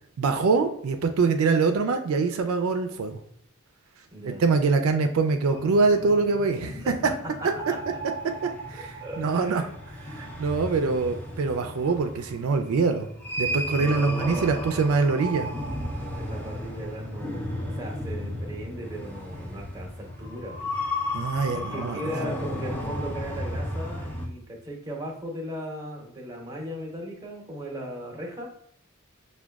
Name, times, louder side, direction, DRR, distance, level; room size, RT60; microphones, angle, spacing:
voice 1, 0.2-3.2 4.3-6.9 8.7-9.6 10.1-13.1 13.4-15.5 21.1-22.1, right 4 dB, 75° right, 6 dB, 0.4 m, -24 dB
voice 2, 4.1-4.4 6.6-7.1 9.0-9.7 10.8-11.0 13.8-14.5 16.1-20.6 21.5-28.5, equal, 15° right, 0 dB, 0.8 m, -37 dB
sound 1, 5.5-24.3, equal, 10° left, 0.5 m, -34 dB
5.9 x 2.2 x 2.3 m, 0.68 s
head